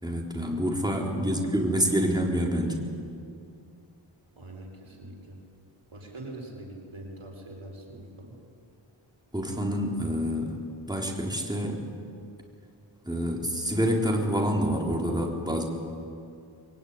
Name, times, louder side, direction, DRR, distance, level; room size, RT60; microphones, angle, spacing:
voice 1, 0.0-2.8 9.3-10.5 10.9-11.8 13.1-15.6, equal, 10° right, -1 dB, 4.2 m, -27 dB
voice 2, 1.1-1.6 4.4-5.4 5.9-8.3, right 2 dB, 80° right, 0 dB, 5.2 m, -43 dB
25.0 x 22.5 x 9.9 m, 2.5 s
wide cardioid pair, 50°, 49 cm